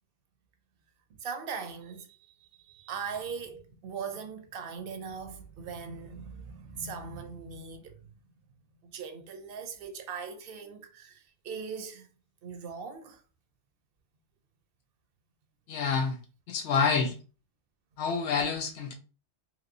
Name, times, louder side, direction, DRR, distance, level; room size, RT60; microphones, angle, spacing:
voice 1, 1.2-8.0 8.9-12.1 12.4-13.2, right 6 dB, 60° right, 0.7 m, -40 dB
voice 2, 15.7-16.2 16.5-17.2 18.0-18.9, left 5 dB, 75° left, 0.9 m, -27 dB
3.0 x 2.9 x 2.5 m
omnidirectional pair, 1.2 m